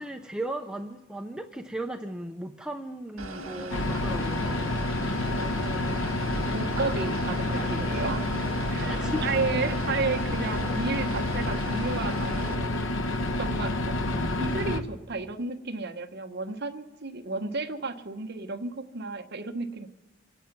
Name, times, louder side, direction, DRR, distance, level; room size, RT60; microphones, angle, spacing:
voice 1, 0.0-4.9 8.9-9.3 14.1-14.5, right 1 dB, 5° right, 4 dB, 0.5 m, -36 dB
sound 1, 3.2-12.5, right 2 dB, 80° right, 1.6 m, -38 dB
sound 2, 3.7-14.8, left 2 dB, 65° left, 1.0 m, -29 dB
voice 2, 5.2-6.0 6.5-8.3 8.7-12.7 13.4-13.9 14.4-19.9, right 4 dB, 50° right, 5 dB, 1.0 m, -33 dB
26.0 x 9.2 x 5.9 m, 1.1 s
head